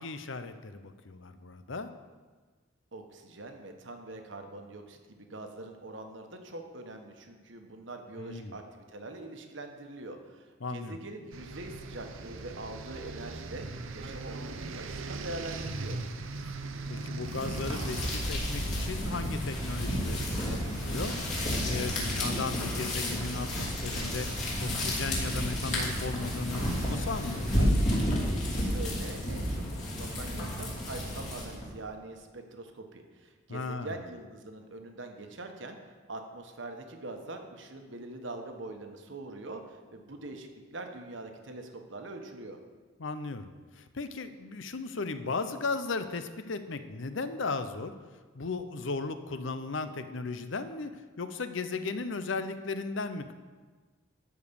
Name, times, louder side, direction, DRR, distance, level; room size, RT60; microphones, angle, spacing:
voice 1, 0.0-1.9 8.1-8.6 10.6-11.0 16.9-21.2 21.6-24.3 24.6-27.7 33.5-34.0 43.0-43.5 43.7-48.0 48.3-53.3, left 3 dB, 65° left, 10 dB, 0.7 m, -36 dB
voice 2, 2.9-13.7 13.9-16.0 28.5-35.8 36.1-42.6, right 2 dB, 65° right, 5 dB, 1.3 m, -43 dB
sound 1, 11.3-27.7, right 3 dB, 80° right, 0.8 m, -41 dB
sound 2, 17.2-31.7, equal, 35° left, 3.0 m, -31 dB
13.0 x 5.1 x 7.0 m, 1.4 s
head